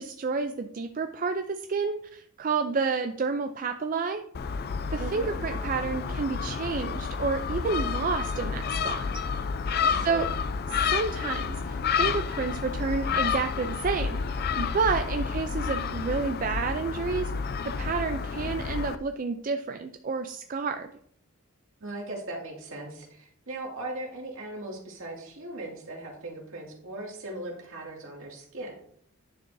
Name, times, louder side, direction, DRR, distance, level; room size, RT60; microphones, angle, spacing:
voice 1, 0.0-4.3 4.9-9.1 10.0-10.3 10.7-17.3 17.6-20.9, right 4 dB, 40° right, 7 dB, 0.3 m, -30 dB
Gull seagull, 4.3-18.9, left 5 dB, 45° left, 0.4 m, -30 dB
voice 2, 4.9-5.3 9.7-10.3 21.8-28.8, right 2 dB, 65° right, -1 dB, 2.3 m, -38 dB
10.0 x 6.9 x 2.6 m, 0.66 s
head